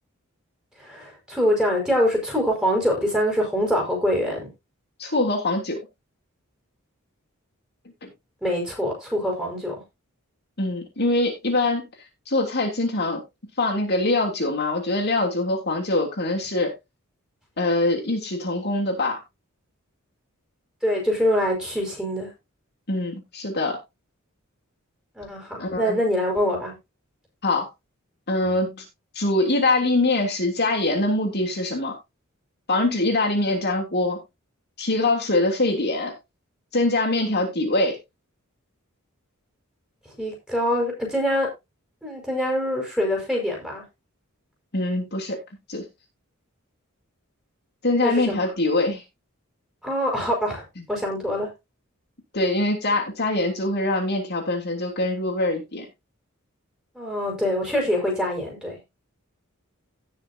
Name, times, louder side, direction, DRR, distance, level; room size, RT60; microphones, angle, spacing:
voice 1, 0.8-4.5 8.4-9.7 20.8-22.3 25.2-26.7 40.2-41.5 42.0-43.8 48.0-48.5 49.8-51.5 57.0-58.8, equal, 5° right, 5.4 m, -24 dB
voice 2, 5.0-5.8 8.0-8.1 10.6-11.9 12.3-13.2 13.6-16.7 17.6-19.2 22.9-23.8 25.6-26.0 27.4-27.7 28.3-28.8 29.1-31.9 32.7-34.2 34.8-36.1 36.7-38.0 44.7-45.4 45.7-45.8 47.8-49.0 50.8-50.9 52.3-55.8, left 2 dB, 50° left, 3.2 m, -23 dB
17.5 x 6.5 x 2.8 m
head